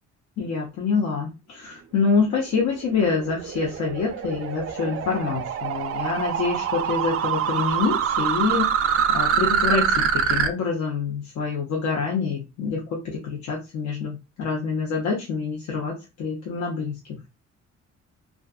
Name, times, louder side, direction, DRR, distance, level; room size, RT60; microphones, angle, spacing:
voice 1, 0.4-12.8 13.2-17.2, left 5 dB, 65° left, -1 dB, 0.7 m, -26 dB
sound 1, 2.4-10.5, right 8 dB, 50° right, 0.4 m, -25 dB
2.4 x 2.4 x 2.3 m, 0.27 s
cardioid pair, 90°, 30 cm